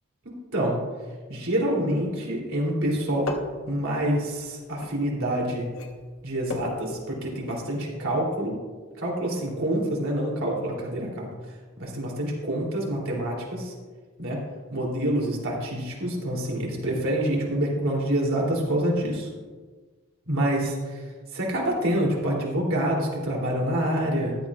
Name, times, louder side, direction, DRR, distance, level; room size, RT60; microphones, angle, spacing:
voice 1, 0.2-0.8 1.3-3.3 3.7-5.7 6.2-8.6 9.0-11.3 11.8-13.7 14.2-14.4 14.7-19.3 20.3-21.0 21.3-24.4, right 1 dB, 75° right, -2 dB, 3.1 m, -27 dB
sound 1, 3.2-5.4 5.7-7.7 7.9-8.1, left 3 dB, 80° left, 1.3 m, -36 dB
14.0 x 12.0 x 2.5 m, 1.4 s
head